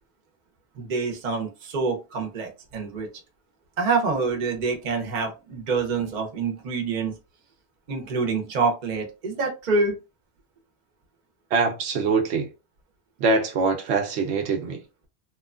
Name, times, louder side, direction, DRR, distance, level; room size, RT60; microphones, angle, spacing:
voice 1, 0.7-3.1 3.8-7.1 7.9-9.9, right 4 dB, 50° right, 0.8 m, -26 dB
voice 2, 11.5-12.5 13.2-14.8, right 4 dB, 80° right, 0.9 m, -23 dB
3.0 x 2.2 x 2.4 m
omnidirectional pair, 1.1 m